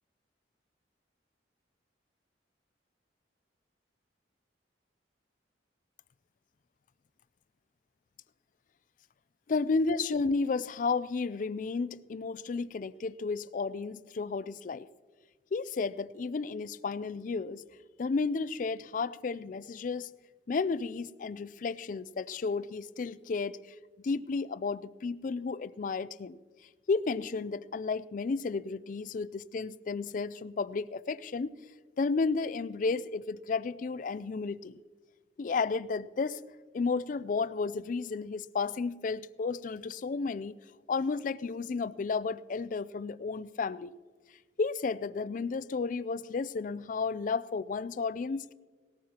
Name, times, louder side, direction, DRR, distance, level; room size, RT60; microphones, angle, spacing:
voice 1, 9.5-14.9 15.5-17.6 18.0-20.1 20.5-23.6 24.0-26.4 26.9-31.6 32.0-34.8 35.4-36.4 36.7-40.5 40.9-44.0 44.6-48.5, left 4 dB, 45° left, 0.3 m, -32 dB
18.5 x 14.0 x 2.9 m
head